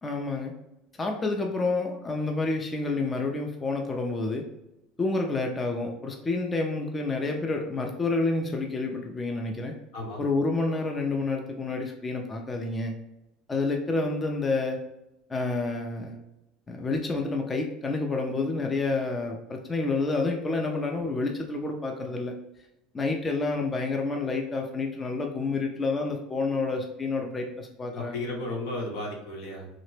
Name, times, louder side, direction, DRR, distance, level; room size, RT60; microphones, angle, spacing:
voice 1, 0.0-0.5 1.0-4.4 5.0-9.7 10.2-12.9 13.5-14.8 15.3-16.2 16.7-22.3 22.9-28.2, left 3 dB, 20° left, 2 dB, 0.4 m, -29 dB
voice 2, 9.9-10.3 27.9-29.7, left 1 dB, 75° left, 0 dB, 0.9 m, -34 dB
2.8 x 2.0 x 3.1 m, 0.90 s
supercardioid pair, 100°, 0 cm